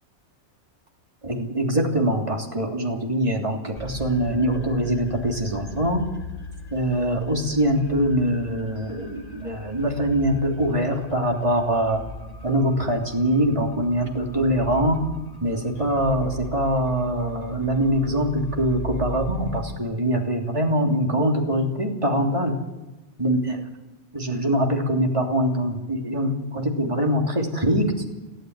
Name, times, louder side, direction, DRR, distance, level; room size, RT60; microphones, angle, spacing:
voice 1, 1.2-6.0 6.7-12.0 12.4-15.0 15.4-22.5 23.2-23.6 24.1-27.9, equal, 25° right, 1 dB, 3.2 m, -23 dB
sound 1, 3.8-19.8, left 1 dB, 30° left, 2.1 m, -39 dB
18.0 x 16.5 x 9.6 m, 1.1 s
omnidirectional pair, 1.2 m